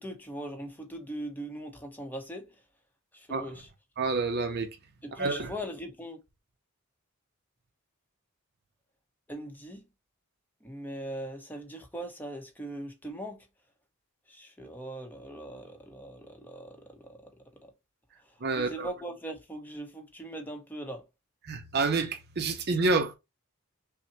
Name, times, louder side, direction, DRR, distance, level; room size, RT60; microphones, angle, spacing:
voice 1, 0.0-2.5 3.1-3.7 5.0-6.2 9.3-9.8 10.6-13.4 14.3-17.2 18.6-21.0, right 1 dB, 10° left, 0.8 m, -40 dB
voice 2, 4.0-4.7 5.2-5.5 18.4-18.9 21.5-23.1, right 3 dB, 50° right, 0.7 m, -28 dB
5.6 x 2.2 x 2.8 m
head